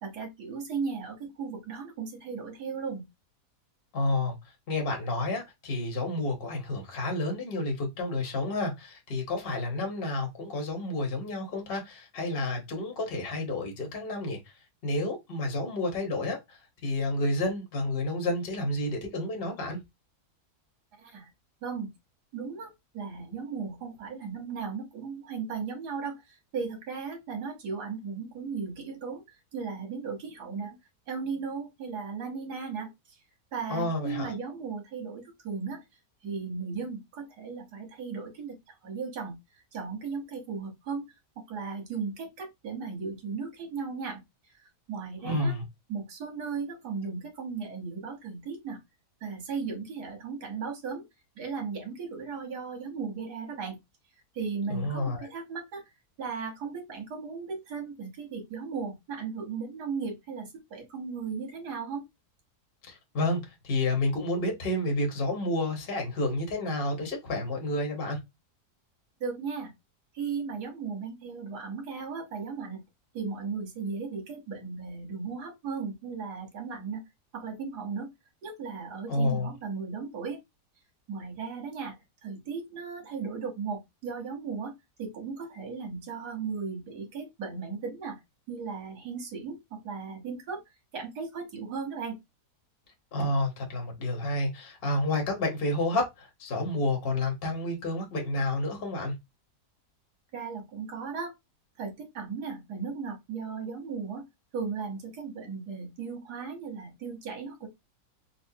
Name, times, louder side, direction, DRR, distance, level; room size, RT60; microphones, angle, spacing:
voice 1, 0.0-3.1 21.0-21.3 21.6-21.9 22.3-30.8 31.1-33.2 33.5-35.8 36.2-39.4 39.7-41.1 41.4-44.2 44.9-45.5 45.9-48.8 49.2-51.0 51.4-53.8 54.4-55.8 56.2-62.0 69.2-69.7 70.1-72.8 73.1-77.0 77.3-78.1 78.4-80.4 81.1-82.0 82.2-84.7 85.0-88.2 88.5-90.6 90.9-92.2 100.3-101.3 101.8-104.2 104.5-107.7, right 5 dB, 75° right, 1.8 m, -36 dB
voice 2, 3.9-4.3 4.7-14.4 14.8-19.8 33.7-34.3 45.2-45.6 54.7-55.3 62.9-68.2 79.1-79.5 93.1-99.1, left 2 dB, 40° left, 1.1 m, -30 dB
4.2 x 2.3 x 2.7 m
omnidirectional pair, 1.7 m